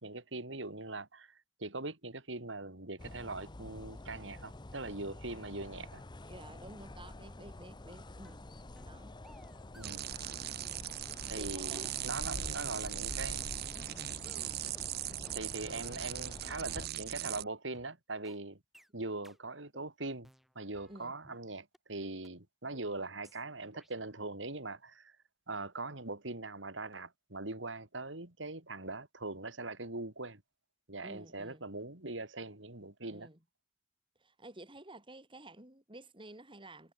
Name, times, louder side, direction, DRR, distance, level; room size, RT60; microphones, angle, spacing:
voice 1, 0.0-1.3 1.6-6.0 9.8-10.0 11.3-13.5 15.3-18.6 18.9-20.3 20.6-25.1 25.5-30.4 30.9-33.3, right 2 dB, 75° right, 3.4 m, -41 dB
sound 1, 3.0-16.9, left 1 dB, 25° left, 0.8 m, -48 dB
voice 2, 6.2-8.5 8.8-9.2 10.6-10.9 11.4-12.0 12.3-12.5 15.1-15.4 15.7-16.0 20.9-21.1 31.0-31.7 33.1-33.4 34.2-36.9, right 1 dB, 25° right, 7.2 m, -52 dB
sound 2, 8.2-8.4 8.8-9.0 9.2-10.5 10.7-14.9 15.2-15.4 15.7-15.9 16.2-16.4 16.7-16.9 17.2-17.4 17.7-17.9 18.2-18.4 18.7-18.9 19.2-19.4 19.7-19.9 20.2-21.4 21.7-21.8 22.2-22.3 22.7-22.9 23.2-23.4 23.7-23.9, equal, ahead, 6.8 m, -59 dB
sound 3, 9.8-17.4, right 13 dB, 55° right, 0.7 m, -39 dB
head